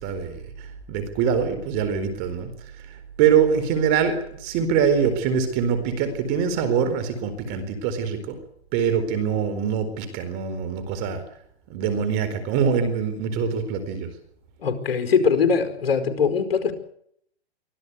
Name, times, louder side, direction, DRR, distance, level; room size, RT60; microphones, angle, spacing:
voice 1, 0.0-2.5 2.9-8.4 8.7-11.2 11.7-14.1, right 7 dB, 30° right, 10 dB, 4.4 m, -24 dB
voice 2, 14.6-16.7, left 6 dB, 65° left, 7 dB, 4.9 m, -21 dB
24.5 x 16.0 x 8.3 m, 0.69 s
hypercardioid pair, 150°, 32 cm